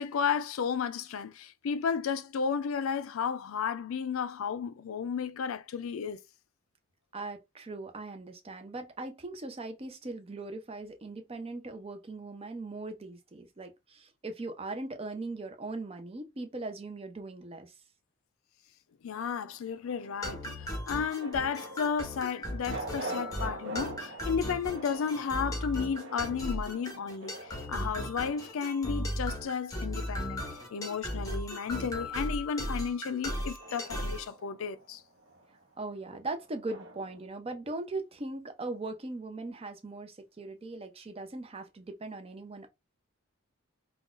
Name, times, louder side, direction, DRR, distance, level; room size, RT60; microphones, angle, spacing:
voice 1, 0.0-6.2 19.0-20.5 20.9-27.3 27.7-30.4 30.7-35.0, left 6 dB, 80° left, 0.4 m, -33 dB
voice 2, 7.1-17.7 35.8-42.7, right 2 dB, 30° right, 0.5 m, -39 dB
sound 1, 19.1-31.7 32.0-37.3, right 1 dB, 60° right, 0.8 m, -46 dB
sound 2, 20.2-34.3, equal, 15° left, 0.9 m, -37 dB
3.8 x 2.3 x 2.4 m
head